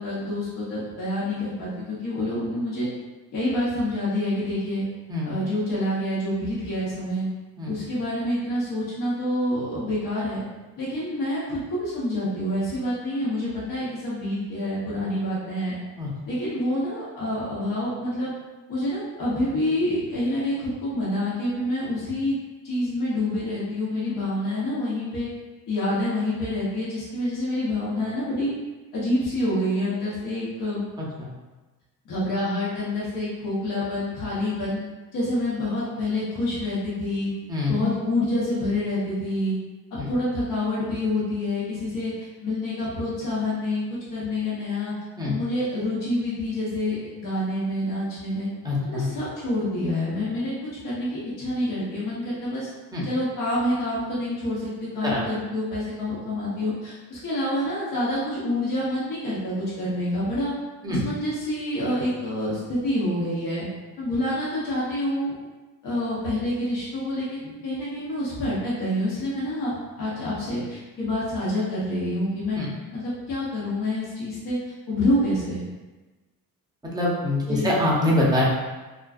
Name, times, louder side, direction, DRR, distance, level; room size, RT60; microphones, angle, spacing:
voice 1, 0.0-2.9 3.3-4.8 5.2-7.3 7.7-10.4 10.8-15.7 16.3-18.3 18.7-22.3 22.6-25.3 25.7-28.5 28.9-30.8 32.0-34.8 35.1-37.3 37.7-39.5 40.1-42.1 42.4-43.8 44.1-44.9 45.2-48.5 48.8-50.5 50.8-52.7 53.0-60.5 60.9-63.7 64.0-65.3 65.8-72.6 72.9-74.6 74.9-75.6 77.5-77.7, left 1 dB, 65° left, -8 dB, 0.9 m, -27 dB
voice 2, 37.5-37.9 40.0-40.1 45.2-45.3 48.6-49.1 52.9-53.0 55.0-55.2 60.8-61.0 72.6-72.7 76.9-78.4, left 1 dB, 10° right, -5 dB, 0.6 m, -24 dB
2.4 x 2.3 x 2.4 m, 1.2 s
cardioid pair, 115°, 36 cm